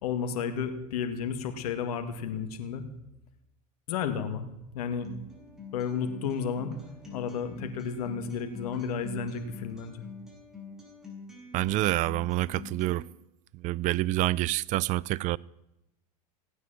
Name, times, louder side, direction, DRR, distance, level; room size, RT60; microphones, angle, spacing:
voice 1, 0.0-2.8 3.9-4.5 4.7-5.1 5.7-6.7 7.1-10.0, left 6 dB, 75° left, 2.3 m, -32 dB
Acoustic guitar, 5.0-13.0, left 3 dB, 5° right, 5.6 m, -45 dB
voice 2, 11.5-13.0 13.6-15.4, right 17 dB, 40° right, 0.4 m, -27 dB
17.0 x 9.5 x 7.6 m
hypercardioid pair, 105°, 20 cm